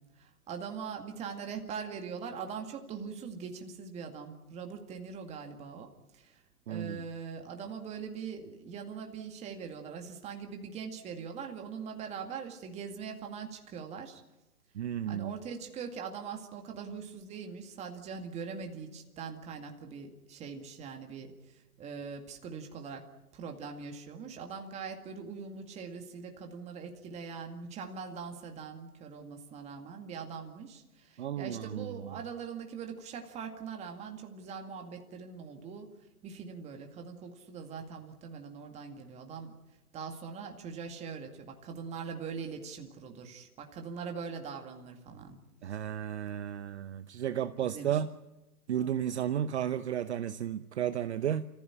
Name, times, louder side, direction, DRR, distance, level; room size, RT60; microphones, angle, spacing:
voice 1, 0.2-5.9 6.1-6.4 6.7-14.2 15.1-23.1 23.3-35.9 36.2-39.5 39.9-45.4 47.6-48.0, right 6 dB, 15° right, 4 dB, 2.1 m, -42 dB
voice 2, 6.7-7.0 14.7-15.3 31.2-32.2 45.6-48.1 48.7-51.5, right 10 dB, 45° right, 12 dB, 0.8 m, -33 dB
29.5 x 15.0 x 10.0 m, 1.0 s
hypercardioid pair, 150°, 46 cm